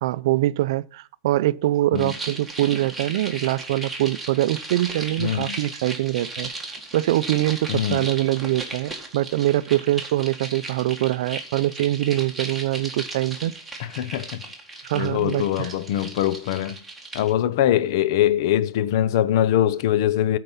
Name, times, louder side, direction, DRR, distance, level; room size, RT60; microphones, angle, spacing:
voice 1, 0.0-6.5 6.9-13.5 14.8-15.7, right 15 dB, 75° right, 0.4 m, -23 dB
sound 1, 1.9-17.3, right 2 dB, ahead, 1.8 m, -36 dB
voice 2, 5.2-5.6 7.7-8.1 13.8-14.5 14.9-16.8 17.1-20.4, left 11 dB, 70° left, 0.6 m, -22 dB
13.5 x 4.6 x 5.4 m
supercardioid pair, 150°, 2 cm